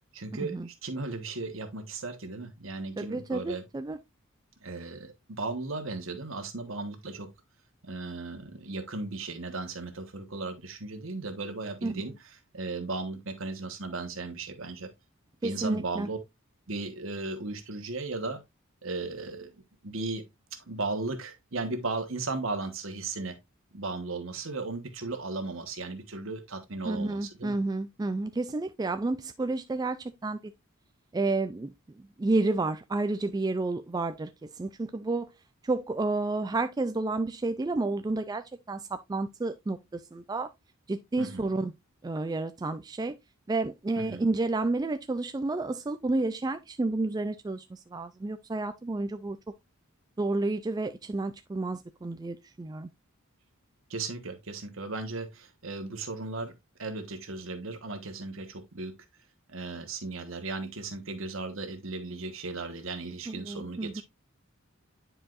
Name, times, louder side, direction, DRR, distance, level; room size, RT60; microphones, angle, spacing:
voice 1, 0.1-3.6 4.6-7.3 7.8-14.9 15.4-16.2 16.7-18.4 18.8-19.5 19.8-20.2 20.7-23.4 23.7-27.6 41.2-41.5 44.0-44.2 53.9-59.0 59.5-64.0, right 3 dB, 65° right, 1.3 m, -36 dB
voice 2, 3.0-4.0 11.8-11.9 15.4-16.1 26.9-30.4 31.1-31.7 32.2-35.3 35.6-40.5 40.9-41.7 42.0-43.1 43.5-49.4 50.2-52.9 63.3-64.0, right 2 dB, 20° right, 0.3 m, -30 dB
9.9 x 4.6 x 2.5 m
head